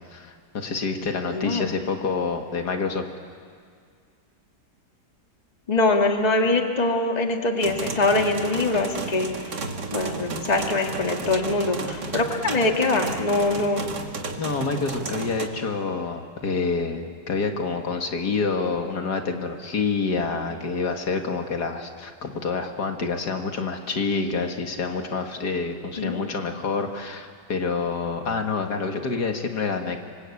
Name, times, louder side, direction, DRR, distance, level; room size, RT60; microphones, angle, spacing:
voice 1, 0.1-3.0 14.4-30.0, left 4 dB, 75° left, 4 dB, 2.3 m, -27 dB
voice 2, 1.3-1.7 5.7-9.3 9.9-13.9 26.0-26.2, left 2 dB, 25° left, 3 dB, 1.9 m, -23 dB
sound 1, 7.6-15.5, right 3 dB, 80° right, 2.5 m, -33 dB
27.5 x 25.5 x 8.5 m, 2.1 s
omnidirectional pair, 1.8 m